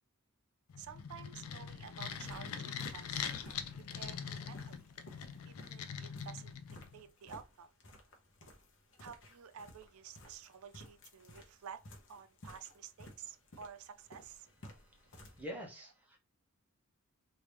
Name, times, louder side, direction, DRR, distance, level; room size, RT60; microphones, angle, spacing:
sound 1, 0.7-7.0, left 7 dB, 85° left, 0.4 m, -43 dB
voice 1, 0.8-3.7 3.9-4.9 5.4-6.5 6.9-7.7 9.0-11.8 12.1-14.5, right 7 dB, 80° right, 0.4 m, -51 dB
sound 2, 2.1-15.4, equal, 60° left, 0.8 m, -56 dB
voice 2, 15.0-16.2, equal, 10° right, 0.9 m, -46 dB
3.1 x 2.6 x 3.3 m
head